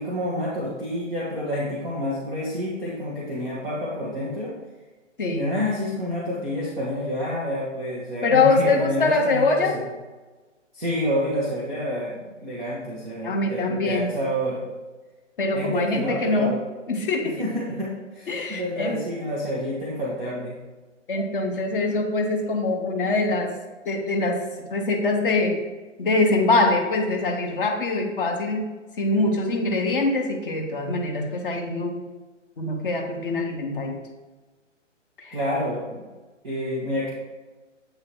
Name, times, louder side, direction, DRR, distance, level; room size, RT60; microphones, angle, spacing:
voice 1, 0.0-4.5 5.3-9.9 10.7-14.6 15.5-16.6 17.4-20.6 35.3-36.1 36.4-37.1, equal, 5° right, -11 dB, 0.4 m, -28 dB
voice 2, 8.2-9.8 13.2-14.1 15.4-16.6 16.9-17.4 18.3-19.0 21.1-23.5 23.9-24.4 24.7-25.6 26.0-32.0 32.6-34.0 35.2-35.4, left 3 dB, 45° left, 3 dB, 1.0 m, -23 dB
7.7 x 3.0 x 4.5 m, 1.2 s
figure-of-eight pair, 135°, 38 cm